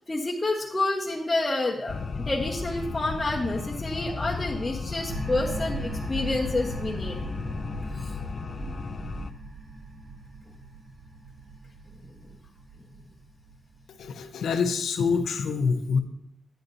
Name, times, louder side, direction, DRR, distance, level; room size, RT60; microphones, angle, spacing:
voice 1, 0.1-7.2 8.0-8.1 8.6-8.7 12.2-12.3, left 2 dB, 25° left, -4 dB, 1.3 m, -29 dB
sound 1, 1.9-9.3, left 4 dB, 50° left, 0.5 m, -34 dB
sound 2, 5.1-14.5, right 3 dB, 40° right, 1.3 m, -39 dB
voice 2, 14.0-16.0, left 5 dB, 85° left, 7 dB, 0.8 m, -26 dB
10.5 x 10.0 x 2.7 m, 0.77 s
cardioid pair, 65°, 0 cm